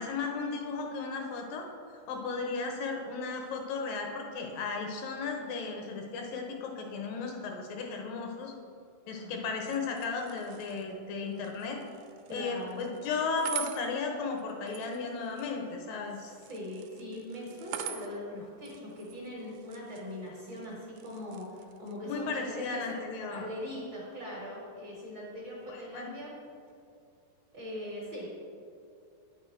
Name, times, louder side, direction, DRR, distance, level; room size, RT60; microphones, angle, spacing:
voice 1, 0.0-1.6 2.1-8.5 9.1-11.8 12.3-16.3 22.1-23.4 25.7-26.1, left 4 dB, 75° left, 2 dB, 2.5 m, -35 dB
voice 2, 9.1-9.6 12.3-12.9 16.1-22.8 23.3-26.4 27.5-28.3, left 1 dB, 45° right, -4 dB, 1.6 m, -41 dB
sound 1, 9.6-22.0, right 10 dB, 80° right, 2.1 m, -46 dB
9.5 x 6.2 x 4.4 m, 2.4 s
omnidirectional pair, 4.1 m